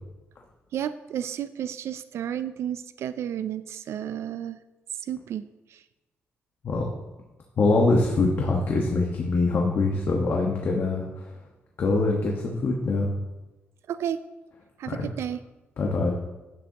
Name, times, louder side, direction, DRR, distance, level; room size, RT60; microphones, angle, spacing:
voice 1, 0.7-4.6 5.0-5.4 5.7-5.8 13.9-14.2 14.8-15.4, right 10 dB, 70° right, 13 dB, 0.4 m, -32 dB
voice 2, 7.6-11.3 11.8-13.1 14.9-15.0 15.8-16.1, left 3 dB, 50° left, -1 dB, 1.3 m, -23 dB
11.0 x 9.3 x 2.9 m, 1.1 s
cardioid pair, 115°, 5 cm